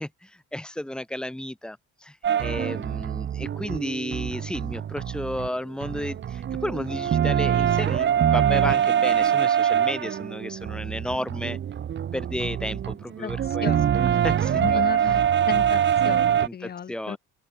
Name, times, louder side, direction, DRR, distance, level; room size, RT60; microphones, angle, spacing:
voice 1, 0.0-11.6 12.1-14.8 16.4-17.2, left 1 dB, 5° left, 5.0 m, -33 dB
sound 1, 2.2-5.5 5.8-16.5, right 9 dB, 35° right, 2.6 m, -24 dB
voice 2, 13.2-17.2, left 8 dB, 30° left, 2.5 m, -35 dB
open air
cardioid pair, 150°, 31 cm